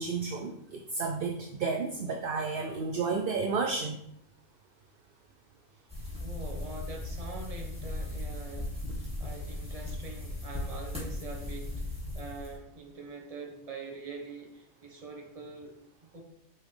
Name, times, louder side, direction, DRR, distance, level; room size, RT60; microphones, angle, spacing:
voice 1, 0.0-4.0, right 4 dB, 55° right, 3 dB, 0.6 m, -32 dB
sound 1, 5.9-12.5, left 2 dB, 5° right, 2.1 m, -37 dB
voice 2, 6.2-8.7 9.2-11.9 12.1-15.7 16.1-16.2, right 3 dB, 30° right, 2 dB, 1.0 m, -44 dB
5.8 x 5.5 x 3.3 m, 0.71 s
omnidirectional pair, 1.4 m